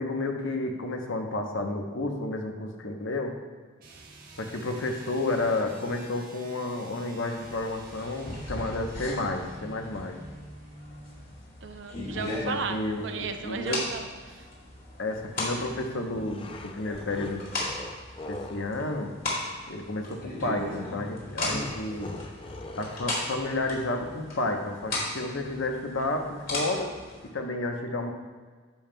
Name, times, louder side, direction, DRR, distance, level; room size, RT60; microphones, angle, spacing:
voice 1, 0.0-3.3 4.4-10.2 12.4-13.8 15.0-17.5 18.3-19.1 19.7-22.1 22.8-26.9 27.3-28.1, left 2 dB, 70° left, 3 dB, 0.9 m, -31 dB
sound 1, 3.8-11.3, right 2 dB, 45° right, 1.2 m, -48 dB
sound 2, 7.4-27.3, left 2 dB, 45° left, 2.3 m, -37 dB
voice 2, 11.6-14.5, right 5 dB, 60° right, 6 dB, 0.6 m, -35 dB
sound 3, 16.1-18.7 21.3-23.6, left 2 dB, 25° left, 0.4 m, -41 dB
10.0 x 7.3 x 2.2 m, 1.4 s
head